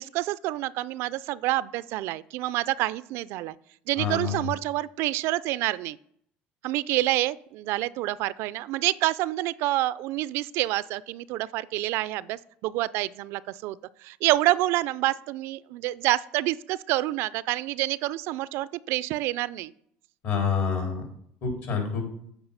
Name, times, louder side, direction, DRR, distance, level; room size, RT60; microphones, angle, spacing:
voice 1, 0.0-3.5 3.9-6.0 6.6-13.8 14.0-19.7, right 17 dB, 70° right, 18 dB, 0.3 m, -27 dB
voice 2, 4.0-4.4 20.2-21.0 21.4-22.0, left 6 dB, 60° left, 1 dB, 3.6 m, -27 dB
8.8 x 4.8 x 5.5 m, 0.68 s
supercardioid pair, 100°, 4 cm